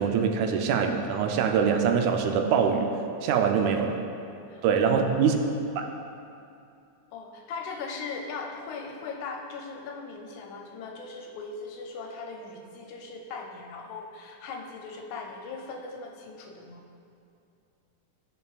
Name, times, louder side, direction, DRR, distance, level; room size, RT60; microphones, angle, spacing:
voice 1, 0.0-2.9 3.2-4.0 4.6-5.4 5.8-5.9, right 6 dB, 80° right, 4 dB, 1.9 m, -24 dB
voice 2, 3.6-4.0 4.5-5.4 7.1-16.8, left 4 dB, 80° left, 2 dB, 1.8 m, -39 dB
15.5 x 5.5 x 2.3 m, 2.6 s
omnidirectional pair, 3.5 m